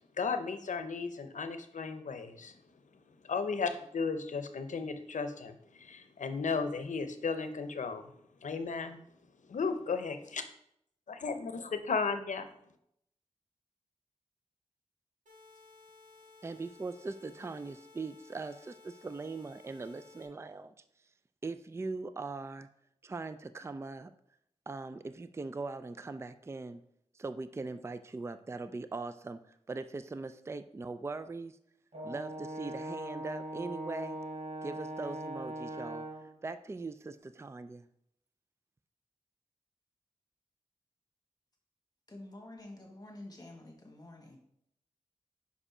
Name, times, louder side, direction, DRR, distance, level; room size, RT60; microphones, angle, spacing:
voice 1, 0.2-2.6 3.2-8.1 8.4-9.0 9.5-10.4 11.1-12.5, left 5 dB, 90° left, 9 dB, 0.6 m, -35 dB
sound 1, 15.3-20.3, left 3 dB, 90° right, 1.8 m, -57 dB
voice 2, 16.4-20.7 21.4-22.7 23.0-24.1 24.7-26.8 27.2-31.6 32.0-34.2 34.6-36.1 36.4-37.9, right 3 dB, 20° right, 11 dB, 0.3 m, -40 dB
Brass instrument, 31.9-36.3, right 1 dB, 60° right, 1.3 m, -40 dB
voice 3, 42.1-44.4, left 1 dB, 30° left, 0 dB, 1.4 m, -49 dB
5.4 x 5.1 x 4.9 m, 0.73 s
wide cardioid pair, 105°, 12 cm